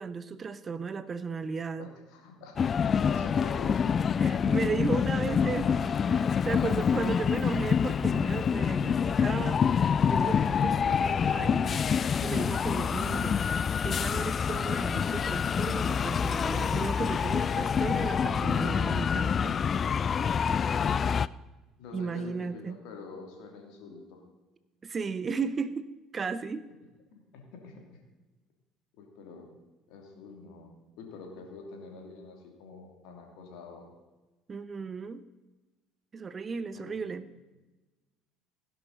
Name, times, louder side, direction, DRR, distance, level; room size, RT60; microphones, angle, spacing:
voice 1, 0.0-1.9 4.2-6.0 6.5-9.7 10.0-11.8 12.2-13.4 13.8-19.6 21.9-22.8 24.8-26.7 34.5-35.2 36.1-37.3, right 5 dB, 30° right, 15 dB, 0.7 m, -35 dB
voice 2, 1.8-2.8 3.0-4.0 6.0-6.4 21.8-24.2 27.1-28.0 29.0-29.5 29.9-33.9 36.7-37.0, left 4 dB, 60° left, 2 dB, 3.0 m, -46 dB
sound 1, 2.6-21.3, left 7 dB, 35° left, 0.3 m, -27 dB
16.5 x 10.5 x 4.2 m, 1.2 s
figure-of-eight pair, 60°, 0 cm